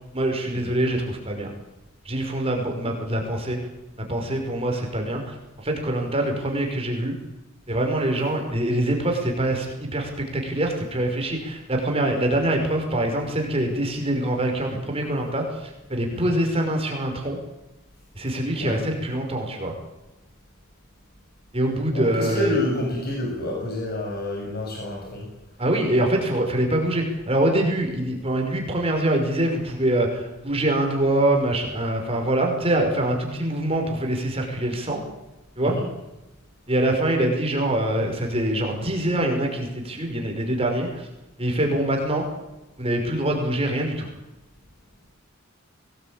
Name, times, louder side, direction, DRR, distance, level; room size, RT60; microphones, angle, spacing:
voice 1, 0.1-1.5 2.0-3.6 4.0-7.2 7.7-17.4 18.2-19.7 21.5-22.6 25.6-35.0 35.6-35.7 36.7-41.1 41.4-42.2 42.8-44.1, right 1 dB, 25° right, 2 dB, 5.6 m, -24 dB
voice 2, 21.9-25.3 35.7-35.8, left 1 dB, 45° left, -1 dB, 7.6 m, -28 dB
23.0 x 20.0 x 9.0 m, 1.0 s
head